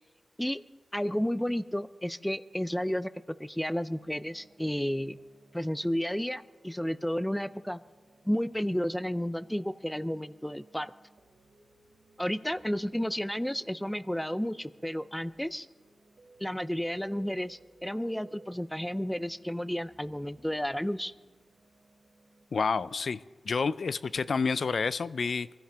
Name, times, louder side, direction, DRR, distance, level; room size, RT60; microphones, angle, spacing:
voice 1, 0.9-5.2 5.5-7.8 8.2-10.9 12.2-15.7 16.4-21.1, equal, 5° left, 14 dB, 0.4 m, -32 dB
sound 1, 3.9-22.5, right 3 dB, 80° right, 3.1 m, -61 dB
voice 2, 22.5-23.2 23.4-25.6, left 5 dB, 65° left, 16 dB, 0.4 m, -29 dB
24.5 x 15.0 x 3.4 m, 1.4 s
wide cardioid pair, 125°, 0 cm